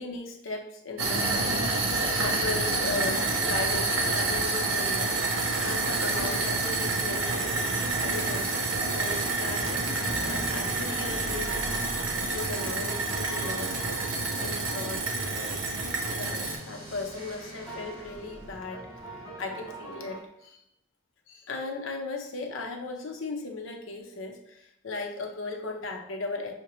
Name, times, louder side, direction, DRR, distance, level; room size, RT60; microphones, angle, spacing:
voice 1, 0.0-8.5 8.9-11.6 12.2-13.9 14.4-15.6 16.1-19.1 19.4-20.6 21.3-26.5, left 3 dB, 70° left, 3 dB, 0.7 m, -37 dB
sound 1, 1.0-16.6, right 3 dB, 80° right, 0.7 m, -28 dB
sound 2, 9.3-20.2, right 1 dB, 20° right, 1.4 m, -42 dB
5.7 x 2.1 x 3.0 m, 0.80 s
head